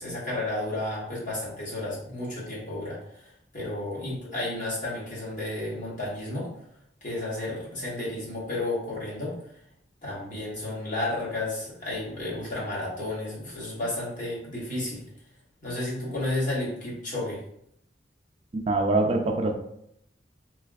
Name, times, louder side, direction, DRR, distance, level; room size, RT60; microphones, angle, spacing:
voice 1, 0.0-6.5 7.0-9.3 10.0-15.0 15.6-17.4, left 2 dB, 45° left, -6 dB, 1.4 m, -32 dB
voice 2, 18.5-19.5, right 2 dB, 35° right, 2 dB, 0.4 m, -24 dB
3.3 x 3.0 x 2.4 m, 0.72 s
head